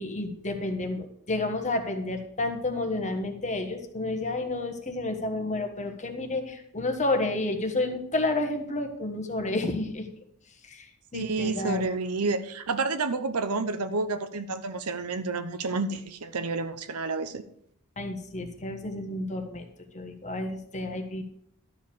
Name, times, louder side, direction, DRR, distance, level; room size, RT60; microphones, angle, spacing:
voice 1, 0.0-10.1 10.6-11.8 18.0-19.7 19.9-21.2, left 2 dB, 35° left, 5 dB, 1.4 m, -30 dB
voice 2, 11.1-17.4, right 3 dB, 85° right, 11 dB, 0.9 m, -30 dB
12.0 x 4.8 x 7.1 m, 0.69 s
head